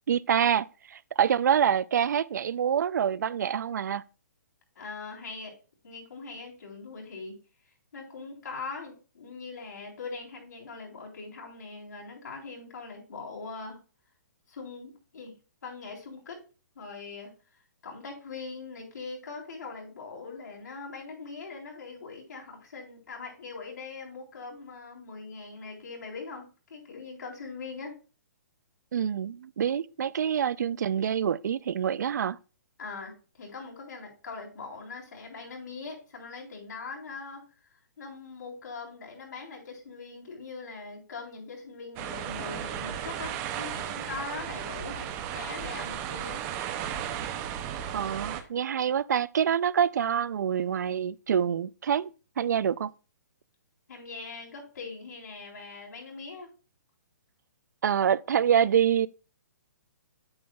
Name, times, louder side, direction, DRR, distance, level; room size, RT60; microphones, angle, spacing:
voice 1, 0.1-4.0 28.9-32.4 47.9-52.1 52.4-52.9 57.8-59.1, right 8 dB, 75° right, 0.4 m, -26 dB
voice 2, 4.8-5.6 5.8-7.4 7.9-13.8 14.5-15.3 15.6-16.4 16.8-17.3 17.8-28.0 32.8-46.4 53.9-56.5, left 4 dB, 80° left, 3.5 m, -41 dB
sound 1, 42.0-48.4, right 9 dB, 20° right, 0.5 m, -35 dB
8.6 x 7.8 x 2.3 m
hypercardioid pair, 165°, 10 cm